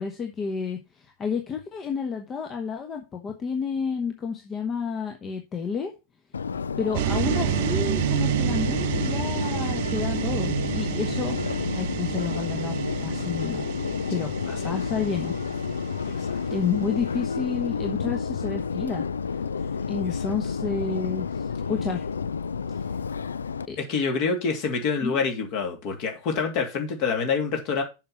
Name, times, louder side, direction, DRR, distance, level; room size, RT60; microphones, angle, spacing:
voice 1, 0.0-5.9 6.8-11.4 11.7-12.8 13.0-13.7 14.1-14.3 14.6-15.3 16.5-19.1 19.9-22.0 22.7-22.9 23.7-23.8 25.0-25.2, left 5 dB, 25° left, 1.2 m, -30 dB
Subway metro underground, 6.3-23.7, left 6 dB, 70° left, 0.4 m, -30 dB
sound 1, 6.9-17.0, right 14 dB, 50° right, 0.4 m, -29 dB
voice 2, 14.2-14.7 16.1-16.4 20.0-20.3 23.8-27.8, left 5 dB, 45° left, 2.7 m, -27 dB
7.3 x 5.7 x 5.9 m
figure-of-eight pair, 90°, 0 cm